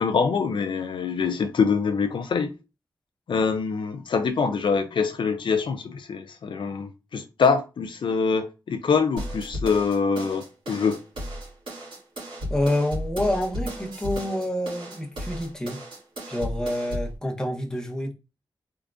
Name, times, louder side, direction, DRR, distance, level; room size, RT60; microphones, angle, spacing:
voice 1, 0.0-2.5 3.3-11.0, left 5 dB, 80° left, 0.4 m, -24 dB
sound 1, 9.2-17.2, equal, 85° right, 2.2 m, -34 dB
voice 2, 12.5-15.8 16.3-18.1, left 1 dB, 10° left, 0.9 m, -27 dB
3.6 x 3.5 x 2.5 m
wide cardioid pair, 125°, 8 cm